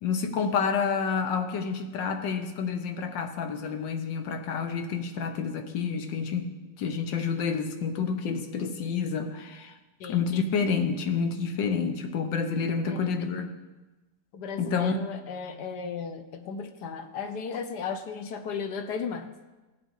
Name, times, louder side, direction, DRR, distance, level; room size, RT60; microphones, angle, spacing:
voice 1, 0.0-6.5 6.8-9.7 10.1-13.5 14.6-15.0, left 5 dB, 90° left, 1.7 m, -29 dB
voice 2, 14.3-19.3, left 6 dB, 70° left, 1.3 m, -35 dB
17.0 x 8.2 x 3.9 m
omnidirectional pair, 1.9 m